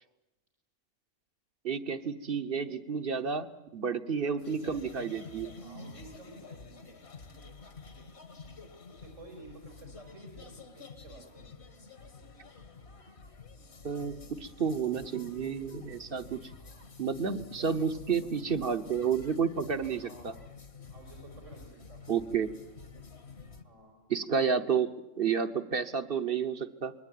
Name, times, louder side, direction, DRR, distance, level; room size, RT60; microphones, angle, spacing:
voice 1, 1.6-5.5 13.8-16.5 17.0-20.3 22.1-22.5 24.1-26.9, right 6 dB, 50° right, 10 dB, 1.3 m, -31 dB
voice 2, 4.2-4.9 5.6-7.0 8.6-11.5 16.6-17.0 17.6-17.7 17.9-18.3 19.9-20.3 20.9-22.0 23.6-24.0, right 2 dB, 90° right, 2 dB, 5.3 m, -53 dB
sound 1, 4.4-23.6, left 4 dB, 60° left, 2.0 m, -49 dB
26.5 x 21.5 x 9.3 m, 0.96 s
omnidirectional pair, 1.3 m